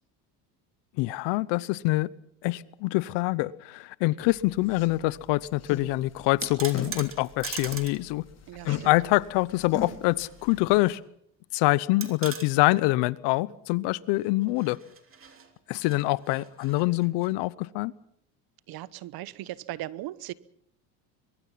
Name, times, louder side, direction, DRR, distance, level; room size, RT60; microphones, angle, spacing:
voice 1, 1.0-2.1 2.4-8.2 8.6-11.0 11.5-14.8 15.7-17.9, left 20 dB, 70° left, 19 dB, 1.0 m, -25 dB
sound 1, 4.2-10.8, left 6 dB, 35° left, 4.7 m, -41 dB
sound 2, 6.2-8.0 8.3-8.4 9.8-10.6 10.9-11.0 12.0-12.5 14.4-17.3, right 6 dB, 30° right, 3.0 m, -40 dB
voice 2, 8.5-8.9 18.7-20.3, right 15 dB, 55° right, 18 dB, 1.1 m, -38 dB
23.0 x 22.5 x 5.9 m, 0.69 s
supercardioid pair, 100°, 43 cm